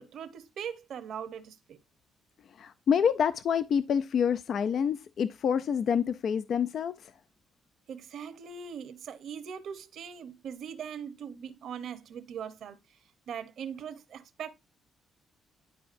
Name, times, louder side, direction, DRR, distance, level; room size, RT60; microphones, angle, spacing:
voice 1, 0.0-1.8 7.9-12.8 13.3-14.5, right 7 dB, 70° right, 0.9 m, -40 dB
voice 2, 2.5-7.1, left 7 dB, 60° left, 0.3 m, -27 dB
10.5 x 4.7 x 2.5 m
cardioid pair, 90°, 0 cm